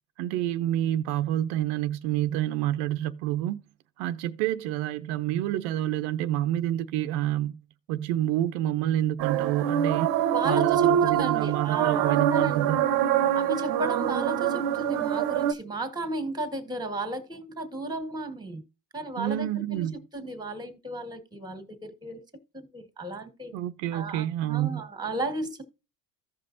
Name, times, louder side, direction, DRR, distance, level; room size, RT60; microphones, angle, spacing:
voice 1, 0.2-3.6 4.0-7.6 7.9-10.1 10.4-12.8 19.2-19.9 23.5-24.9, right 13 dB, 75° right, 0.8 m, -28 dB
sound 1, 9.2-15.5, right 10 dB, 50° right, 1.0 m, -25 dB
voice 2, 10.3-12.7 13.3-18.6 18.9-22.2 22.5-23.5 23.9-25.6, right 2 dB, 10° right, 1.9 m, -34 dB
15.0 x 5.4 x 2.7 m
supercardioid pair, 120°, 49 cm